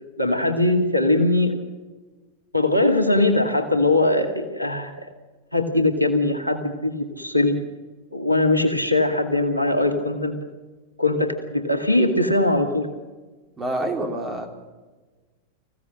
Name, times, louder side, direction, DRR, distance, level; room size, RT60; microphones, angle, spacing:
voice 1, 0.2-1.6 2.5-4.9 5.5-7.6 8.1-10.4 11.0-12.9, left 2 dB, 90° right, 6 dB, 2.1 m, -21 dB
voice 2, 13.6-14.5, right 1 dB, 20° right, 3 dB, 3.6 m, -27 dB
25.5 x 16.0 x 6.4 m, 1.3 s
figure-of-eight pair, 90°, 0 cm